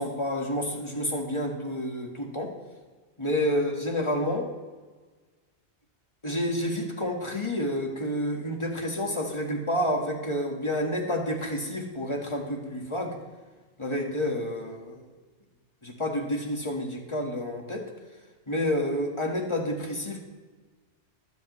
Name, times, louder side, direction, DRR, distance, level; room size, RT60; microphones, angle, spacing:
voice 1, 0.0-2.5 3.2-4.5 6.2-13.2 13.8-15.1 15.8-17.9 18.5-20.2, equal, 25° left, 0 dB, 1.7 m, -29 dB
20.5 x 8.0 x 3.1 m, 1.4 s
omnidirectional pair, 1.2 m